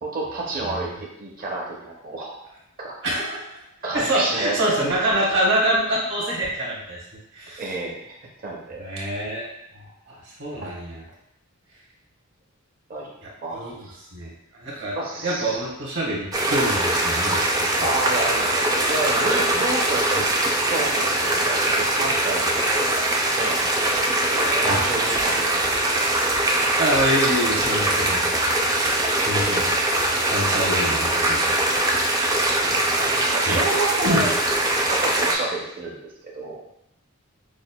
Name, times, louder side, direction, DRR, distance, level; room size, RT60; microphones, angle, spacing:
voice 1, 0.0-2.4 2.8-3.0 3.8-4.9 7.6-8.2 8.4-8.9 12.9-13.1 13.4-14.0 14.9-15.6 17.8-20.3 20.7-22.6 23.4-23.6 24.3-26.0 30.5-30.6 32.9-34.3 34.9-36.6, right 2 dB, 40° right, -2 dB, 0.7 m, -29 dB
voice 2, 0.6-0.9 3.0-3.4 3.9-7.0 7.3-7.6 8.8-9.4 10.1-11.0 13.5-13.8 14.1-14.3 14.6-17.9 24.6-24.8 26.8-28.2 28.7-29.7 30.2-32.0 33.5-33.6 34.0-34.2, right 1 dB, 60° right, -4 dB, 1.2 m, -26 dB
sound 1, 16.3-35.3, right 1 dB, 15° right, 0.3 m, -22 dB
6.2 x 2.1 x 2.2 m, 0.80 s
head